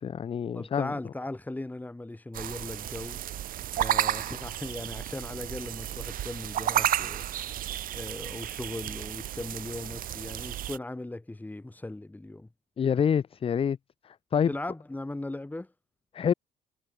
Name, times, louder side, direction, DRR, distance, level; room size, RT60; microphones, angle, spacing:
voice 1, 0.0-0.9 12.8-13.8 14.0-14.5 16.1-16.3, left 7 dB, 35° left, 0.7 m, -27 dB
voice 2, 0.5-3.4 3.7-12.5 14.5-15.7, left 2 dB, 10° left, 3.8 m, -38 dB
sound 1, 2.3-10.8, right 12 dB, 55° right, 0.9 m, -32 dB
cardioid pair, 110°, 17 cm